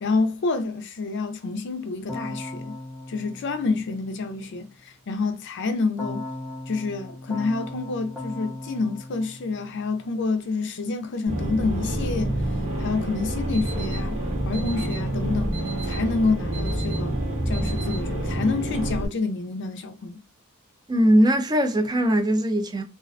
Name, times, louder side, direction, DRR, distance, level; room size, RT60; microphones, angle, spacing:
voice 1, 0.0-2.8 3.1-6.2 6.7-12.4 12.8-14.2 14.5-17.2 17.5-20.2, left 3 dB, 55° left, 0.4 m, -28 dB
Keyboard (musical), 2.1-4.4 6.0-10.3, left 2 dB, 5° right, 0.8 m, -38 dB
sound 1, 11.3-19.1, right 1 dB, 35° right, 0.8 m, -27 dB
Alarm, 13.3-18.3, right 6 dB, 70° right, 0.8 m, -43 dB
voice 2, 20.9-22.8, equal, 20° right, 0.4 m, -20 dB
2.4 x 2.2 x 2.4 m
head